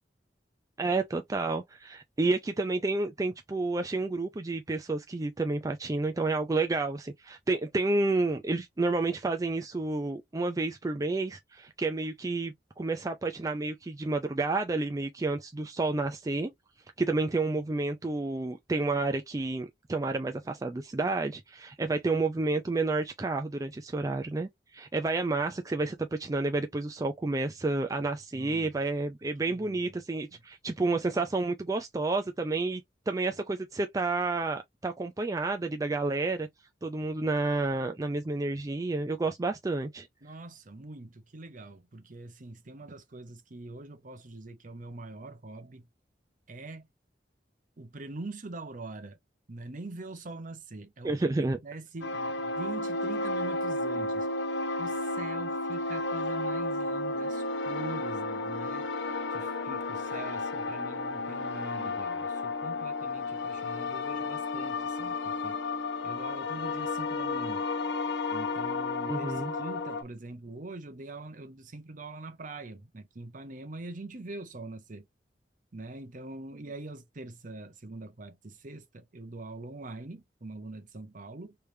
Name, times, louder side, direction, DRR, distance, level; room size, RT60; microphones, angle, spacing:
voice 1, 0.8-16.5 17.0-36.5 36.8-40.1 51.0-51.6 69.1-69.5, right 3 dB, 20° right, 0.4 m, -30 dB
voice 2, 28.3-28.7 29.4-29.8 40.2-45.9 46.5-46.9 47.8-49.2 49.5-51.2 51.4-54.3 54.8-65.6 66.0-67.6 68.3-75.1 75.7-81.6, right 2 dB, 50° right, 0.8 m, -43 dB
sound 1, 52.0-70.0, left 3 dB, 80° left, 0.9 m, -32 dB
3.3 x 3.3 x 2.7 m
head